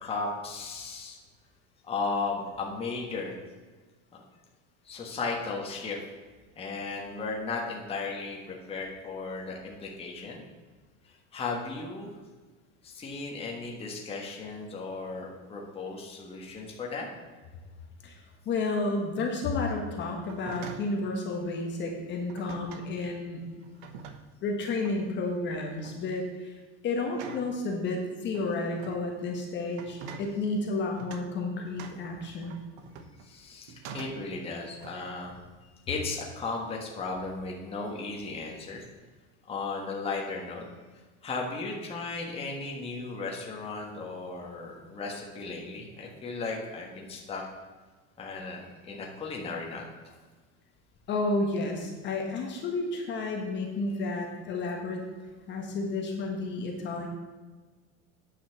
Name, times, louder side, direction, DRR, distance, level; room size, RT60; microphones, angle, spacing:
voice 1, 0.0-1.2 1.8-3.4 4.1-4.2 4.8-6.0 6.5-10.4 11.0-12.2 12.8-17.1 33.2-35.4 35.9-38.8 39.5-40.7 40.9-47.4 48.2-50.1, left 3 dB, 15° left, -1 dB, 1.4 m, -36 dB
voice 2, 18.4-23.4 24.4-32.6 51.1-55.0 55.5-57.1, left 3 dB, 35° left, 1 dB, 1.4 m, -31 dB
sound 1, 20.2-21.0 22.3-22.9 23.6-24.4 24.8-25.2 25.6-26.0 27.1-27.6 28.3-29.0 29.7-30.3 31.0-31.3 31.8-33.3 33.7-34.3 34.8-35.2, right 6 dB, 75° right, 1.1 m, -44 dB
9.4 x 5.7 x 7.2 m, 1.3 s
cardioid pair, 160°, 33 cm